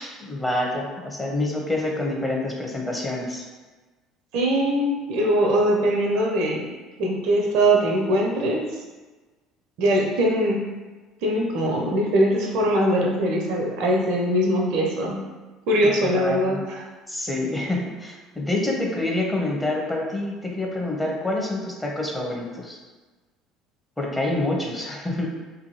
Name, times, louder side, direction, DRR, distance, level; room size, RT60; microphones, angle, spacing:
voice 1, 0.2-3.4 15.8-16.6 17.1-22.8 24.0-25.3, left 2 dB, 10° left, -1 dB, 0.7 m, -27 dB
voice 2, 4.3-6.7 7.0-8.6 9.8-10.7 11.2-15.2 15.7-16.8, right 1 dB, 60° right, 0 dB, 0.5 m, -21 dB
2.7 x 2.6 x 2.7 m, 1.3 s
figure-of-eight pair, 60°, 0 cm